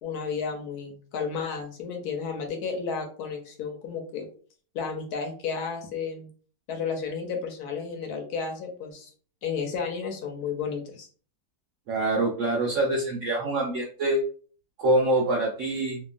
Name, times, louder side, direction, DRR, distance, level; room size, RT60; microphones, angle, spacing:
voice 1, 0.0-4.3 4.7-6.3 6.7-9.1 9.4-11.1, left 5 dB, 70° left, 3 dB, 1.1 m, -32 dB
voice 2, 11.9-14.2 14.8-16.0, right 1 dB, 70° right, -2 dB, 0.7 m, -25 dB
2.9 x 2.3 x 2.4 m, 0.42 s
omnidirectional pair, 1.8 m